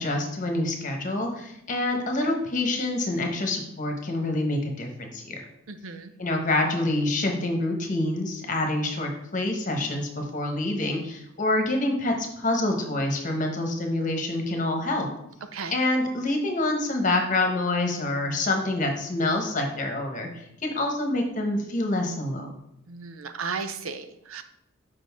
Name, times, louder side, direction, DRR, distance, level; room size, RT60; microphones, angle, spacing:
voice 1, 0.0-5.4 6.2-15.1 15.7-22.5, left 2 dB, 40° left, 3 dB, 1.1 m, -27 dB
voice 2, 5.7-6.1 15.5-15.8 22.9-24.4, right 5 dB, 85° right, 9 dB, 0.6 m, -35 dB
7.6 x 5.2 x 3.5 m, 0.81 s
head